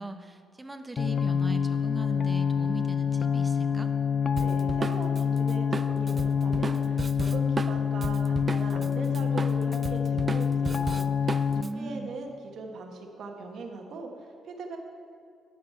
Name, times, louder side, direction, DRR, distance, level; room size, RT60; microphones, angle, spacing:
voice 1, 0.0-3.9 11.5-12.1, right 2 dB, 15° right, 7 dB, 0.7 m, -38 dB
sound 1, 1.0-11.6, left 7 dB, 50° left, 0.3 m, -27 dB
Drum kit, 4.4-8.9 9.1-11.7, right 4 dB, 35° right, 0.3 m, -34 dB
voice 2, 4.4-14.8, right 3 dB, 65° right, 3 dB, 1.2 m, -40 dB
10.5 x 5.1 x 6.7 m, 2.4 s
cardioid pair, 90°, 0 cm